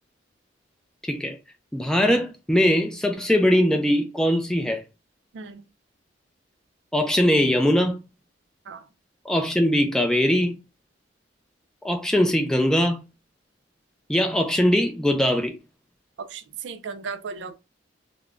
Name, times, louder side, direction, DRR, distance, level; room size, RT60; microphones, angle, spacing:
voice 1, 1.0-1.4 1.7-4.8 6.9-8.0 9.3-10.6 11.8-13.0 14.1-15.5, equal, 5° left, 0.3 m, -21 dB
voice 2, 16.2-17.6, right 5 dB, 75° right, 0.4 m, -36 dB
3.4 x 2.0 x 2.4 m
head